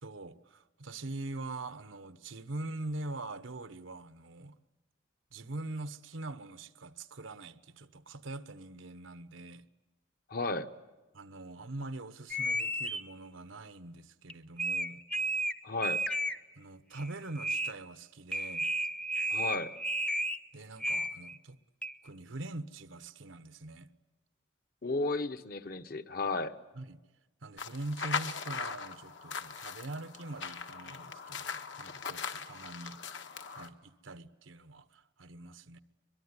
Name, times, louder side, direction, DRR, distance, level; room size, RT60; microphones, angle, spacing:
voice 1, 0.0-4.6 5.3-9.6 11.1-15.0 16.6-18.7 20.5-21.6 22.0-23.9 26.7-27.0 27.4-33.0 33.5-35.8, right 2 dB, 90° right, 1.1 m, -43 dB
voice 2, 10.3-10.7 15.6-16.0 19.3-19.7 24.8-26.5, left 3 dB, 50° left, 1.1 m, -33 dB
sound 1, 12.3-13.0 14.3-14.4 14.6-15.5 15.8-16.4 17.0-17.1 17.4-17.7 18.3-20.4 20.8-21.4 21.8-21.9, right 1 dB, 5° left, 0.8 m, -33 dB
sound 2, 27.6-33.7, left 5 dB, 70° left, 1.5 m, -40 dB
23.0 x 22.5 x 9.8 m
head